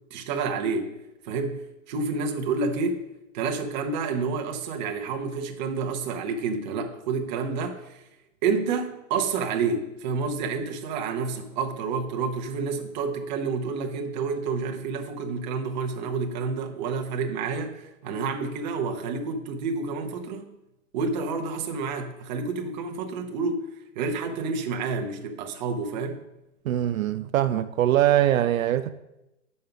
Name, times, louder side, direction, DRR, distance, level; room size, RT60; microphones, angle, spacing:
voice 1, 0.1-0.9 1.2-3.0 3.3-8.0 8.4-20.6 20.9-26.2, right 4 dB, 35° right, 0.9 m, -29 dB
voice 2, 26.7-28.9, right 12 dB, 75° right, 0.6 m, -22 dB
6.5 x 5.4 x 5.8 m
hypercardioid pair, 155°, 40 cm